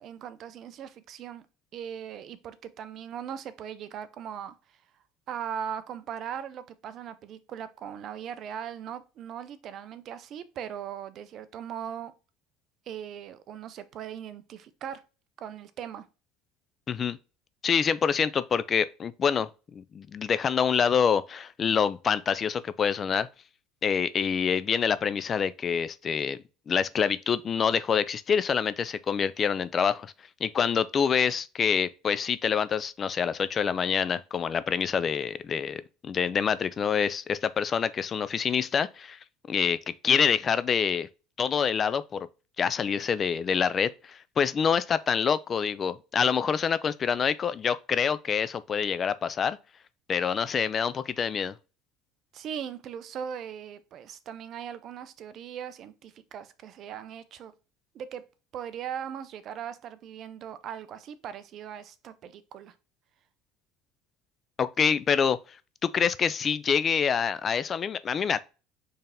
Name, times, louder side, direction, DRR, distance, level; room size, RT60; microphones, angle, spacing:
voice 1, 0.0-1.4 1.7-4.5 5.3-12.1 12.9-15.0 15.4-16.0 52.3-57.5 57.9-58.2 58.5-62.7, right 8 dB, 50° right, 0.5 m, -39 dB
voice 2, 16.9-17.2 17.6-23.3 23.8-26.4 26.7-30.1 30.4-39.2 39.5-39.8 40.0-41.1 41.4-42.3 42.6-49.6 50.1-51.5 64.6-65.4 65.8-68.4, left 7 dB, 30° left, 0.3 m, -26 dB
4.5 x 3.3 x 3.6 m
supercardioid pair, 125°, 0 cm